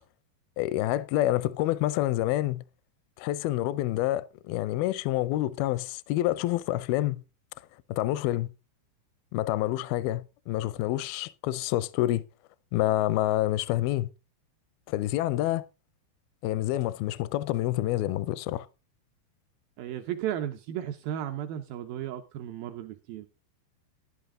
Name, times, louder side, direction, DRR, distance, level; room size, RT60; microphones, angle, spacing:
voice 1, 0.6-2.6 3.2-7.2 7.9-8.5 9.3-12.2 12.7-14.1 14.9-15.6 16.4-18.7, left 15 dB, 80° left, 2.2 m, -27 dB
voice 2, 19.8-23.3, right 11 dB, 85° right, 2.0 m, -34 dB
11.0 x 11.0 x 3.7 m
omnidirectional pair, 5.0 m